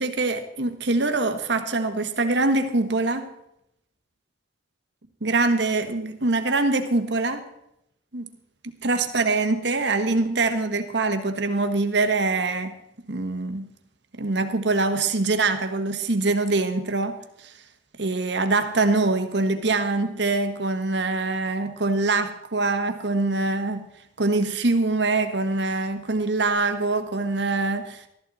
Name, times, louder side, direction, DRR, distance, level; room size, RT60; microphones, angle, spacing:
voice 1, 0.0-3.3 5.2-7.5 8.1-8.3 8.8-12.8 13.1-13.7 14.2-17.6 18.0-23.9 24.2-28.1, right 3 dB, 70° right, 1.4 m, -24 dB
14.5 x 13.5 x 4.2 m
head